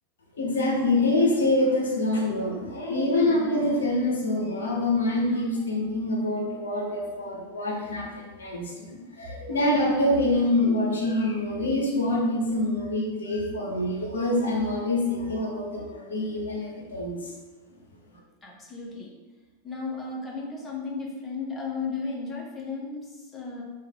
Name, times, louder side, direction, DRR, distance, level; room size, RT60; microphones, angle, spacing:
voice 1, 0.4-8.9 9.2-17.3, left 1 dB, 70° left, -2 dB, 0.6 m, -25 dB
voice 2, 18.4-19.1 19.6-23.6, left 4 dB, 15° left, -3 dB, 0.7 m, -34 dB
3.2 x 2.2 x 3.4 m, 1.3 s
figure-of-eight pair, 90°, 0 cm